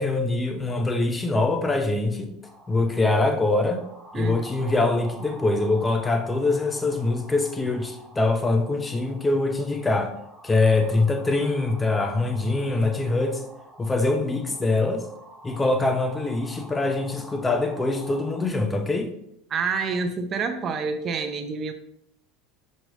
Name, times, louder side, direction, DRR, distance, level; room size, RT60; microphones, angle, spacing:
voice 1, 0.0-2.3 2.7-3.8 4.1-10.1 10.4-13.4 13.8-15.1 15.4-19.1, left 2 dB, 15° left, 6 dB, 0.8 m, -23 dB
sound 1, 2.4-18.5, right 1 dB, 5° right, 1.1 m, -47 dB
voice 2, 4.1-4.4 19.5-21.7, right 5 dB, 35° right, 6 dB, 0.7 m, -28 dB
6.4 x 5.1 x 3.3 m, 0.77 s
supercardioid pair, 115°, 0 cm